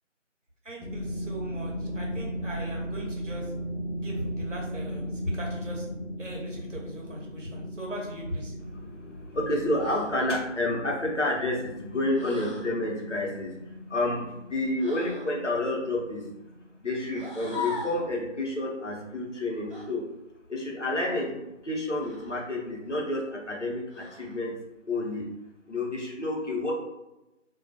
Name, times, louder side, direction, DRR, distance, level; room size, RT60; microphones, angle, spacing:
voice 1, 0.6-3.5 4.0-5.9 6.2-8.5, equal, 75° right, -2 dB, 0.9 m, -38 dB
sound 1, 0.8-17.4, equal, ahead, 1.2 m, -37 dB
voice 2, 9.1-13.5 13.9-16.3 16.8-20.0 20.5-21.3 21.6-24.5 24.9-25.3 25.7-26.7, left 1 dB, 70° left, -2 dB, 0.8 m, -29 dB
sound 2, 9.8-10.2 12.1-12.7 14.8-15.3 17.1-18.1 19.7-19.9 22.0-22.5 23.9-24.4, left 5 dB, 45° right, 0.9 m, -39 dB
2.2 x 2.2 x 2.6 m, 0.97 s
figure-of-eight pair, 180°, 38 cm